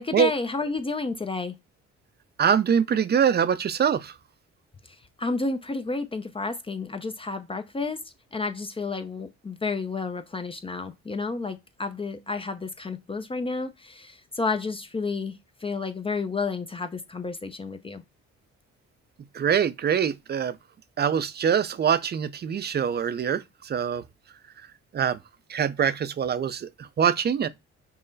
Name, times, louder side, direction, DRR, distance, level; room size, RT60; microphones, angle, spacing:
voice 1, 0.0-1.5 5.2-8.0 8.3-18.0, left 3 dB, 20° left, 0.5 m, -31 dB
voice 2, 2.4-4.1 19.3-20.6 21.0-24.0 24.9-25.2 25.5-27.5, right 8 dB, 35° right, 0.5 m, -24 dB
5.5 x 2.1 x 3.9 m
cardioid pair, 80°, 29 cm